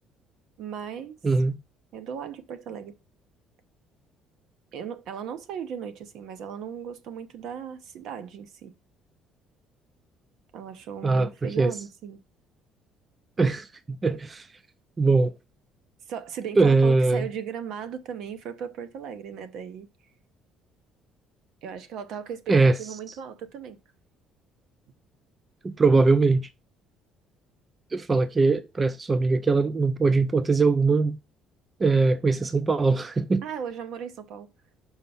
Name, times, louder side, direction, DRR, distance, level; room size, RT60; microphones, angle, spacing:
voice 1, 0.6-1.2 1.9-3.0 4.7-8.7 10.5-12.2 16.1-19.9 21.6-23.8 33.4-34.5, right 8 dB, 60° right, 0.8 m, -37 dB
voice 2, 1.2-1.6 11.0-11.7 13.4-14.5 15.0-15.3 16.6-17.3 22.5-22.8 25.6-26.5 27.9-31.2 31.8-33.4, right 3 dB, 20° right, 0.3 m, -21 dB
5.6 x 4.5 x 5.5 m
cardioid pair, 170°, 0 cm